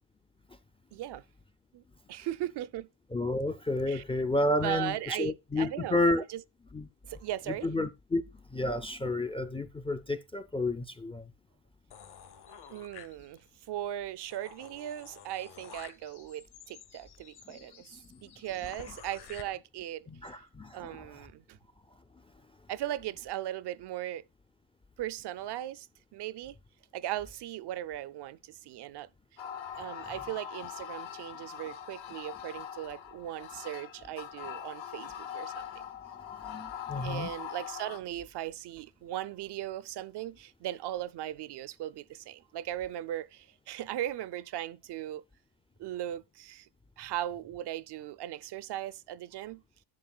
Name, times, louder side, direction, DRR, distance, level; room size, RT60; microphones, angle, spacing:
voice 1, 0.9-1.2 1.7-2.9 3.9-4.0 4.6-6.0 6.3-6.4 7.0-7.7 12.7-17.9 18.2-20.1 20.7-21.6 22.7-24.2 25.0-25.9 26.1-26.6 26.9-29.1 29.8-35.9 37.0-45.2 45.8-46.7 47.0-49.6, right 13 dB, 60° right, 0.5 m, -38 dB
voice 2, 3.1-6.2 6.7-6.9 7.5-8.2 8.5-11.3 17.5-17.6 18.1-18.2 20.1-21.3 36.4-37.3, left 2 dB, 15° left, 0.3 m, -31 dB
sound 1, 11.9-13.6 14.0-14.1 14.3-19.4, left 8 dB, 55° left, 1.0 m, -51 dB
sound 2, 29.4-38.0, left 9 dB, 75° left, 1.2 m, -42 dB
10.5 x 7.2 x 2.3 m
cardioid pair, 95°, 47 cm